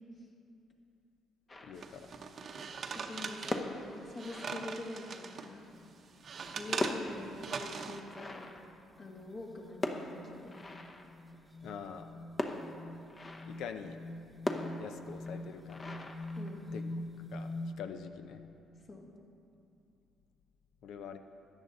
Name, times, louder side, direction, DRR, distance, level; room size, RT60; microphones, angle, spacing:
sound 1, 1.5-2.2 3.3-5.2 6.2-9.4 9.8-11.4 12.4-13.8 14.5-17.0, left 2 dB, 30° left, 0.9 m, -41 dB
voice 1, 1.6-2.1 11.6-12.1 13.5-14.0 14.8-15.9 16.7-16.8 17.3-17.5 17.8-18.4 20.8-21.2, left 7 dB, 75° left, 8 dB, 0.7 m, -44 dB
sound 2, 1.8-5.5 5.9-8.0, right 5 dB, 55° right, 0.7 m, -41 dB
voice 2, 2.9-5.7 6.6-8.5 9.0-10.6 16.4-16.6 18.9-19.1, left 2 dB, 45° left, -1 dB, 2.0 m, -45 dB
sound 3, 5.6-5.9 6.3-6.5 7.0-7.1 7.4-7.6 8.0-17.7, left 1 dB, 15° right, 0.8 m, -45 dB
13.5 x 9.2 x 4.0 m, 2.5 s
supercardioid pair, 70°, 0 cm